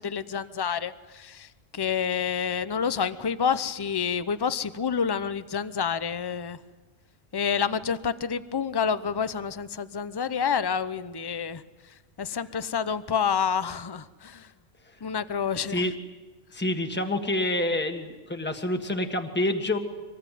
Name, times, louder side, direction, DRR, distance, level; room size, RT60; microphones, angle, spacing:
voice 1, 0.0-6.6 7.3-11.6 12.2-14.5 15.0-15.9, left 7 dB, 25° left, 14 dB, 0.6 m, -28 dB
voice 2, 16.5-19.8, left 1 dB, 10° left, 5 dB, 1.6 m, -27 dB
25.0 x 20.5 x 9.3 m, 1.3 s
omnidirectional pair, 1.3 m